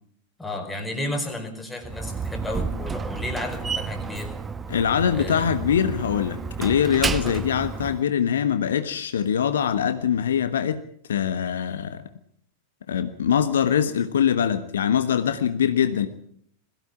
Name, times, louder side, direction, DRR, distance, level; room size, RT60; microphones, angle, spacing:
voice 1, 0.4-4.3 5.1-5.6, left 1 dB, 5° left, 4 dB, 4.7 m, -32 dB
Slam, 1.8-8.0, right 5 dB, 15° right, 1.0 m, -31 dB
voice 2, 4.7-10.8 11.1-12.0 12.9-16.1, left 8 dB, 65° left, 10 dB, 1.3 m, -23 dB
21.5 x 16.0 x 8.6 m, 0.66 s
figure-of-eight pair, 90°, 0 cm